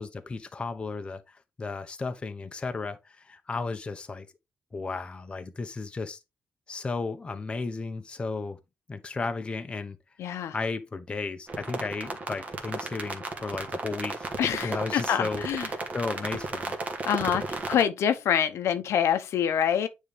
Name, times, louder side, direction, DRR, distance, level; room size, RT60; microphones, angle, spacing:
voice 1, 0.0-4.3 4.7-6.2 6.7-8.6 8.9-10.0 10.5-14.3 14.6-16.8, left 3 dB, 25° left, 0.8 m, -34 dB
voice 2, 10.2-10.5 14.4-15.7 17.0-19.9, left 9 dB, 85° left, 0.9 m, -26 dB
sound 1, 11.5-17.8, right 3 dB, 35° right, 1.4 m, -34 dB
9.3 x 3.7 x 3.4 m
wide cardioid pair, 155°, 5 cm